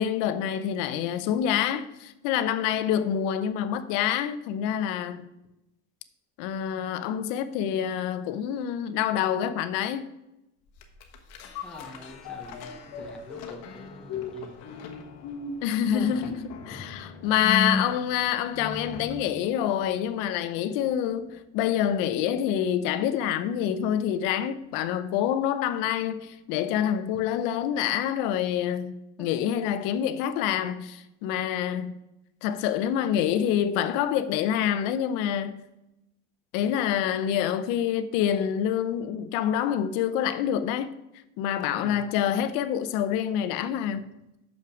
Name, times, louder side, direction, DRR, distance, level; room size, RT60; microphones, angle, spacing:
voice 1, 0.0-5.3 6.4-10.0 15.6-31.9 32.4-35.6 36.5-40.9 41.4-44.1, left 9 dB, 70° left, 0.8 m, -27 dB
sound 1, 10.8-19.4 19.8-19.9, left 4 dB, 50° left, 1.2 m, -36 dB
voice 2, 11.6-14.5 15.9-16.2 16.7-16.9 29.2-29.3 41.8-42.0, left 1 dB, ahead, 0.8 m, -44 dB
6.6 x 5.8 x 6.2 m
cardioid pair, 155°, 33 cm